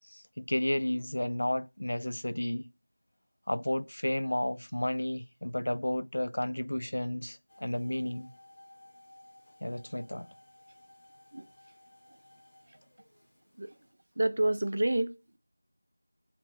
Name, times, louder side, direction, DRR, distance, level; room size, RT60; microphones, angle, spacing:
voice 1, 0.1-2.7 3.5-8.3 9.6-10.3, left 1 dB, 75° left, 0.5 m, -32 dB
sound 1, 7.5-13.9, left 1 dB, 20° left, 2.2 m, -58 dB
voice 2, 14.2-15.1, right 1 dB, 45° right, 0.6 m, -28 dB
7.4 x 4.4 x 5.0 m
figure-of-eight pair, 175°, 0 cm